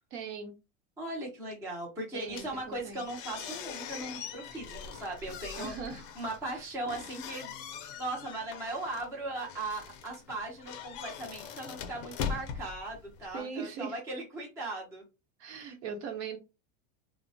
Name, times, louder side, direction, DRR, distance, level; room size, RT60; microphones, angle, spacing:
voice 1, 0.1-0.5 2.1-3.0 5.6-6.0 6.5-6.7 13.3-14.0 15.4-16.4, right 6 dB, 65° right, 0.9 m, -40 dB
voice 2, 1.0-5.7 6.2-7.5 8.0-15.0, right 2 dB, 10° right, 0.4 m, -38 dB
sound 1, 2.3-13.4, left 7 dB, 45° left, 0.5 m, -42 dB
2.9 x 2.0 x 2.6 m
supercardioid pair, 160°, 38 cm